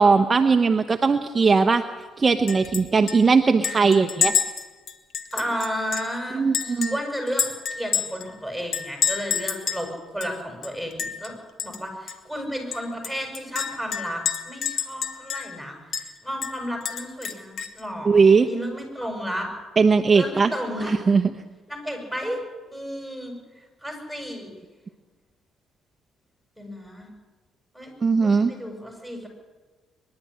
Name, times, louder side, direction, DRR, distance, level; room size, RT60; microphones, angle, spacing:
voice 1, 0.0-1.8 2.2-4.4 6.3-7.0 18.0-18.5 19.8-20.5 20.9-21.3 28.0-28.5, right 4 dB, 30° right, 6 dB, 0.9 m, -19 dB
Chink clink, 2.5-2.8 3.1-3.2 3.6-6.1 6.5-8.3 8.7-9.9 10.2-10.3 10.6-11.3 11.6-11.8 12.1-12.2 12.7-15.6 15.9-16.1 16.4-17.8, left 8 dB, 65° left, 1.8 m, -28 dB
voice 2, 5.3-11.3 11.6-19.5 20.1-20.9 21.7-22.4 22.7-23.3 23.8-24.5 26.6-27.1 27.7-27.9 28.2-29.3, equal, 5° left, 2 dB, 6.7 m, -33 dB
23.0 x 11.5 x 10.0 m, 1.3 s
cardioid pair, 90°, 0 cm